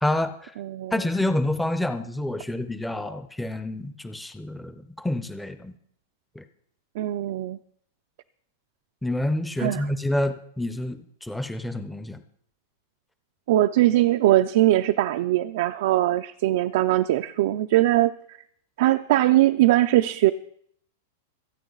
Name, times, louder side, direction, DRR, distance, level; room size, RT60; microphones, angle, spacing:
voice 1, 0.0-0.5 0.9-5.7 6.3-6.4 9.0-12.2, left 1 dB, ahead, 10 dB, 0.7 m, -28 dB
voice 2, 0.6-0.9 7.0-7.6 9.6-9.9 13.5-18.1 18.8-20.3, right 15 dB, 45° right, 7 dB, 0.5 m, -21 dB
27.0 x 9.0 x 4.0 m, 0.65 s
supercardioid pair, 180°, 0 cm